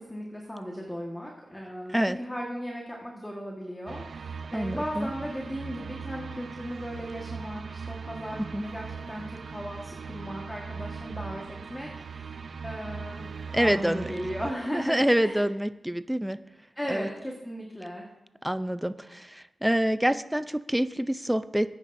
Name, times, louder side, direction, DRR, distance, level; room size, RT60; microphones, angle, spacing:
voice 1, 0.1-12.4 12.6-15.4 16.7-18.1, equal, 10° left, -2 dB, 1.4 m, -37 dB
sound 1, 3.9-14.5, right 5 dB, 65° right, 0.4 m, -39 dB
voice 2, 4.5-5.1 8.4-8.6 13.5-14.1 14.7-16.4 16.9-17.1 18.4-21.8, equal, 5° right, 13 dB, 0.4 m, -26 dB
19.0 x 9.7 x 2.6 m, 1.0 s
wide cardioid pair, 100°, 0 cm